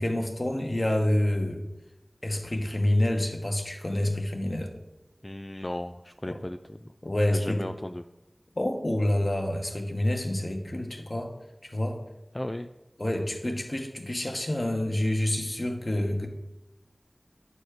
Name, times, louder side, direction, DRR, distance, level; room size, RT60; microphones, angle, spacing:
voice 1, 0.0-1.6 2.2-4.7 6.3-6.4 7.0-7.6 8.6-11.3 11.6-12.0 13.0-16.3, left 1 dB, 50° left, 2 dB, 1.4 m, -27 dB
voice 2, 5.2-6.9 7.3-8.0 12.3-12.7, left 1 dB, 30° left, 8 dB, 0.3 m, -35 dB
9.2 x 4.2 x 6.6 m, 0.96 s
wide cardioid pair, 40°, 0 cm